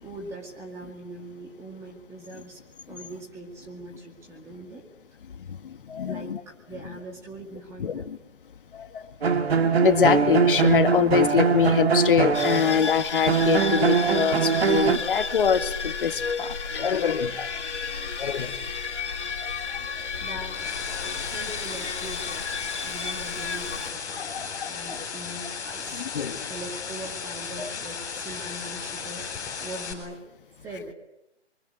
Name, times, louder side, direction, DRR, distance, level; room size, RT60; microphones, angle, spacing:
voice 1, 0.0-2.6 2.9-4.9 6.0-8.1 20.2-20.6 21.1-22.5 22.8-30.2 30.6-30.9, right 2 dB, 5° right, 1 dB, 2.2 m, -41 dB
voice 2, 5.5-6.4 7.8-8.2 8.7-9.0 9.8-17.5 18.2-18.5 24.1-25.0 25.9-26.4 27.6-27.7, left 7 dB, 45° left, 11 dB, 1.7 m, -25 dB
sound 1, 9.2-12.9 13.3-15.0, right 5 dB, 60° right, 2.3 m, -22 dB
sound 2, 12.3-23.9, left 5 dB, 70° left, 3.1 m, -32 dB
sound 3, 20.1-29.9, left 6 dB, 10° left, 4.1 m, -35 dB
29.0 x 24.0 x 8.0 m, 0.82 s
hypercardioid pair, 160°, 36 cm